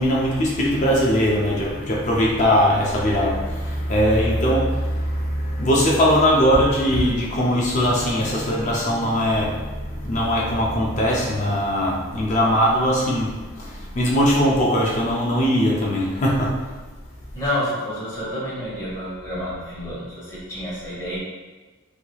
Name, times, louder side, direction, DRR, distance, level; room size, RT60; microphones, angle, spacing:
voice 1, 0.0-16.7, equal, 35° left, -3 dB, 0.4 m, -20 dB
voice 2, 17.3-21.2, equal, 15° left, -9 dB, 0.9 m, -29 dB
3.1 x 2.8 x 2.2 m, 1.3 s
head